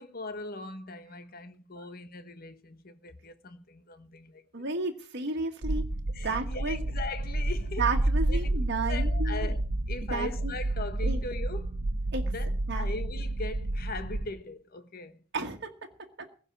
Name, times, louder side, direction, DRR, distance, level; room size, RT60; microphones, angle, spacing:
voice 1, 0.0-4.6 6.1-7.8 8.3-8.5 8.9-11.8 12.3-15.2, left 3 dB, 50° left, 1.2 m, -40 dB
voice 2, 4.5-5.8 6.2-6.8 7.8-9.5 10.1-10.5 11.0-11.2 12.1-12.2 12.7-12.9 15.3-15.7, right 3 dB, 55° right, 1.5 m, -32 dB
sound 1, 5.6-14.3, right 1 dB, 85° right, 0.8 m, -30 dB
15.5 x 5.4 x 9.8 m
head